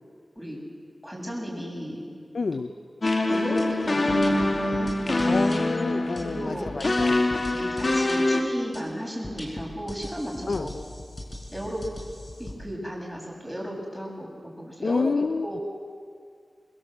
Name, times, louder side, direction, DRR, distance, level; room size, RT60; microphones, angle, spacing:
voice 1, 1.0-2.1 3.3-5.5 6.2-6.9 7.4-10.7 11.5-11.9 12.4-14.3 14.6-15.1 15.4-15.6, equal, ahead, -1 dB, 7.6 m, -34 dB
voice 2, 2.3-2.7 5.3-7.2 10.5-10.7 14.8-15.5, left 4 dB, 75° left, 13 dB, 0.5 m, -28 dB
sound 1, 3.0-8.4, left 2 dB, 55° left, 2.2 m, -24 dB
sound 2, 3.6-3.7 4.1-5.6 6.2-8.2 8.7-8.8 9.2-12.5, left 1 dB, 35° left, 5.8 m, -40 dB
26.0 x 20.5 x 7.9 m, 2.1 s
wide cardioid pair, 55°, 0 cm